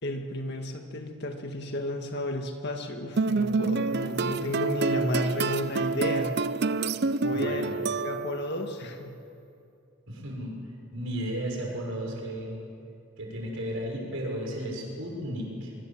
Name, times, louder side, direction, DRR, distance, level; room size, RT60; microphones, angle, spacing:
voice 1, 0.0-6.3 7.2-9.1, left 1 dB, 50° left, 4 dB, 2.1 m, -32 dB
sound 1, 3.2-8.5, right 4 dB, 50° right, 0.6 m, -28 dB
voice 2, 7.3-7.7 10.1-10.6 10.9-12.6 13.2-15.7, equal, 65° right, -1 dB, 6.6 m, -34 dB
24.5 x 23.5 x 7.5 m, 2.6 s
head